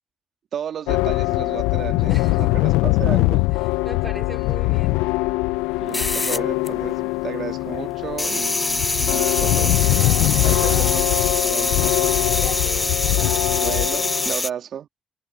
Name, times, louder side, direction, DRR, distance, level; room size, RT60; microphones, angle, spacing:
voice 1, 0.5-3.4 5.8-9.9 10.4-11.8 13.5-14.9, right 9 dB, 65° right, 2.2 m, -33 dB
sound 1, 0.9-14.3, left 21 dB, 80° left, 0.7 m, -22 dB
voice 2, 2.1-2.6 3.8-5.0 8.9-9.0 9.9-10.9 12.3-13.5, right 1 dB, 15° right, 3.6 m, -38 dB
sound 2, 5.9-7.2 7.4-14.5, left 2 dB, 25° left, 0.4 m, -24 dB
hypercardioid pair, 40°, 0 cm